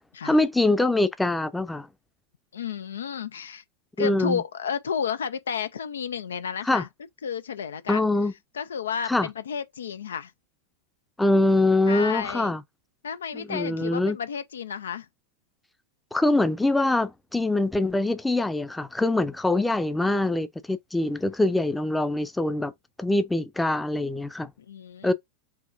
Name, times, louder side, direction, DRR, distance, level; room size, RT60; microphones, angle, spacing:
voice 1, 0.2-1.9 4.0-4.4 6.6-6.8 7.9-8.3 9.1-9.3 11.2-12.6 13.3-14.2 16.1-22.7 23.0-24.5 25.0-25.1, left 2 dB, 5° left, 0.6 m, -24 dB
voice 2, 2.5-3.6 4.0-6.9 7.2-8.1 8.5-10.3 11.9-12.5 13.0-15.1 24.6-25.1, left 7 dB, 65° left, 0.3 m, -32 dB
5.1 x 2.9 x 2.5 m
figure-of-eight pair, 90°, 0 cm